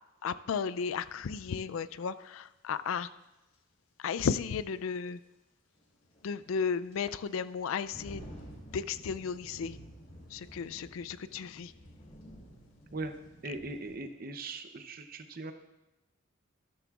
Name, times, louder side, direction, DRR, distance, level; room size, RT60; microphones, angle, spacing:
voice 1, 0.2-3.1 4.0-5.2 6.2-8.3 8.7-9.8 10.3-11.7, left 6 dB, 80° left, 15 dB, 0.4 m, -34 dB
sound 1, 1.0-1.1 3.5-3.6 4.1-4.2 5.7-14.0, equal, 40° left, 2.5 m, -51 dB
voice 2, 13.4-15.5, right 2 dB, 45° right, 8 dB, 0.7 m, -39 dB
13.0 x 13.0 x 2.4 m, 0.96 s
head